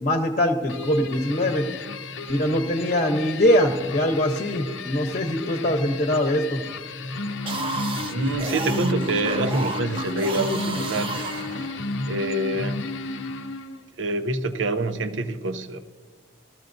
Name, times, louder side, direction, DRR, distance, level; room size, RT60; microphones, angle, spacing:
voice 1, 0.0-1.6 2.3-6.6, left 1 dB, 40° left, 4 dB, 0.9 m, -22 dB
sound 1, 0.7-13.9, left 2 dB, 90° left, 0.6 m, -32 dB
sound 2, 7.3-12.1, right 3 dB, 30° right, 0.6 m, -32 dB
voice 2, 8.1-11.7 12.1-12.8 14.0-15.8, right 2 dB, 85° right, 9 dB, 0.7 m, -26 dB
17.5 x 14.0 x 2.6 m, 1.5 s
head